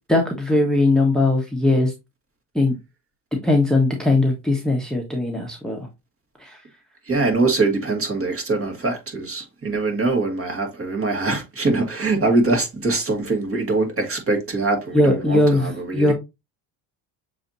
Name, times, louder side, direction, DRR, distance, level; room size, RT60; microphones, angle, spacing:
voice 1, 0.1-1.9 2.5-2.7 3.4-5.8 6.4-6.6 14.9-16.1, left 2 dB, ahead, 1.2 m, -19 dB
voice 2, 7.0-16.1, right 3 dB, 30° right, 1.9 m, -23 dB
6.8 x 2.9 x 2.6 m
supercardioid pair, 95°, 44 cm